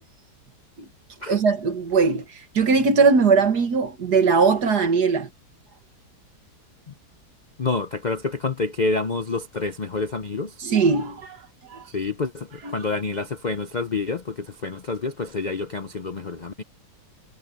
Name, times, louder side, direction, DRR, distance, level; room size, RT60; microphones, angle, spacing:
voice 1, 1.3-2.2 2.6-5.3 10.6-11.4 11.7-11.8, right 5 dB, 65° right, 2.2 m, -19 dB
voice 2, 7.6-10.6 11.9-16.6, left 3 dB, 45° left, 0.5 m, -28 dB
omnidirectional pair, 1.9 m